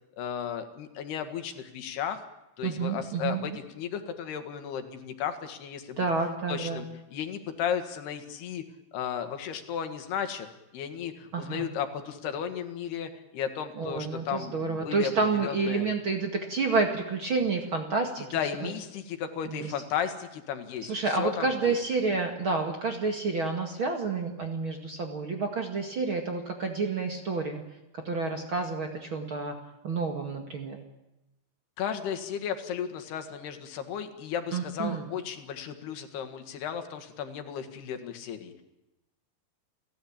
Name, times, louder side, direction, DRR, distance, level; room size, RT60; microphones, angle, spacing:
voice 1, 0.2-2.3 2.6-6.0 6.5-6.9 7.1-8.6 8.9-10.5 10.7-15.9 18.2-21.8 31.8-38.6, left 8 dB, 80° left, 7 dB, 3.9 m, -34 dB
voice 2, 2.6-3.5 6.0-6.8 11.3-11.7 13.8-18.3 18.6-18.7 19.5-19.7 20.8-27.6 27.9-29.6 29.8-30.8 34.5-35.1, right 4 dB, 40° right, 3 dB, 2.1 m, -29 dB
30.0 x 17.0 x 8.8 m, 0.95 s
omnidirectional pair, 4.6 m